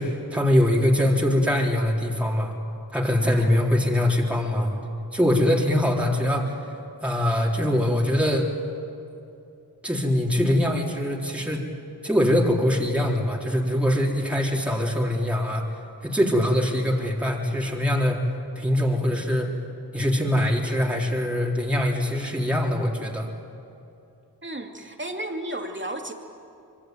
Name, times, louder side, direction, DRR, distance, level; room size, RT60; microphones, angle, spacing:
voice 1, 0.0-2.5 2.9-4.7 5.1-6.6 7.0-8.5 9.8-11.6 12.0-15.6 16.0-18.3 18.6-19.5 19.9-23.3, left 1 dB, 5° right, -2 dB, 4.0 m, -23 dB
voice 2, 3.2-3.7 24.4-26.1, right 1 dB, 25° right, 3 dB, 2.7 m, -33 dB
25.5 x 23.5 x 9.3 m, 2.7 s
wide cardioid pair, 60°, 41 cm